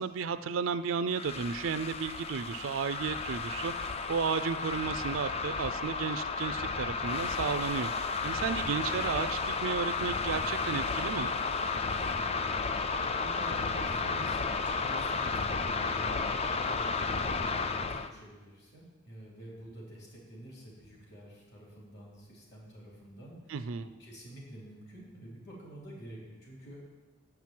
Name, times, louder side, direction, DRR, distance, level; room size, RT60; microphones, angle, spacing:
voice 1, 0.0-11.3 23.5-23.9, right 6 dB, 75° right, 11 dB, 0.4 m, -33 dB
sound 1, 1.1-18.1, left 4 dB, 30° left, 0.3 m, -33 dB
voice 2, 8.7-9.0 12.9-23.5 23.8-26.8, right 1 dB, 55° left, -4 dB, 3.3 m, -48 dB
7.8 x 5.9 x 7.6 m, 1.2 s
head